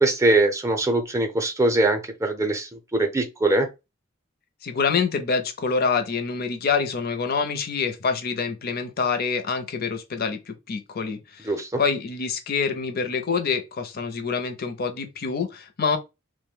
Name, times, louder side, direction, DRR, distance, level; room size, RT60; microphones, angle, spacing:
voice 1, 0.0-3.7 11.4-11.8, right 2 dB, 15° right, 0.6 m, -22 dB
voice 2, 4.6-11.5 11.8-16.0, left 5 dB, 50° left, 0.6 m, -26 dB
3.1 x 2.1 x 3.6 m
head